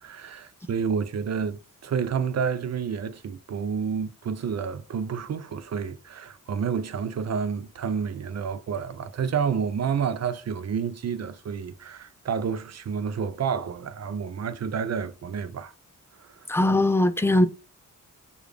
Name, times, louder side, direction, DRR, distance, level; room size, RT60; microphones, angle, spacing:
voice 1, 0.0-15.7 16.2-16.3, right 6 dB, 55° right, 0.5 m, -29 dB
voice 2, 16.5-17.5, left 1 dB, 10° left, 0.3 m, -20 dB
6.4 x 2.4 x 3.3 m
wide cardioid pair, 110°, 33 cm